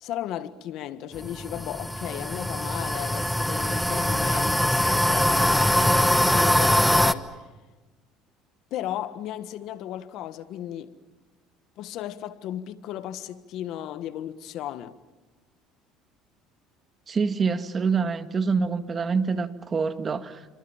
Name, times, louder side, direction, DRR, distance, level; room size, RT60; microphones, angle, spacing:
voice 1, 0.0-7.4 8.7-11.0 11.8-15.0, left 12 dB, 65° left, 1.6 m, -35 dB
sound 1, 1.1-7.1, equal, 5° left, 1.2 m, -22 dB
voice 2, 17.1-20.5, right 5 dB, 30° right, 2.0 m, -26 dB
29.5 x 25.5 x 7.4 m
supercardioid pair, 105°, 0 cm